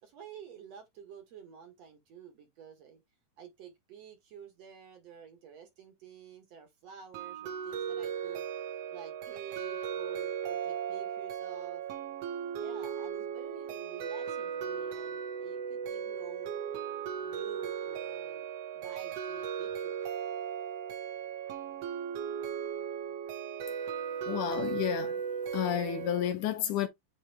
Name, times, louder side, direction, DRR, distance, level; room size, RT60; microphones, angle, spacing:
voice 1, 0.0-3.0 3.4-8.5 8.9-11.8 12.6-16.6 17.2-18.5 18.7-20.0, right 8 dB, 55° right, 2.5 m, -50 dB
sound 1, 7.1-26.3, right 8 dB, 85° right, 1.4 m, -37 dB
voice 2, 24.3-25.2 25.5-26.9, left 11 dB, 75° left, 2.2 m, -31 dB
8.1 x 3.3 x 3.6 m
omnidirectional pair, 4.0 m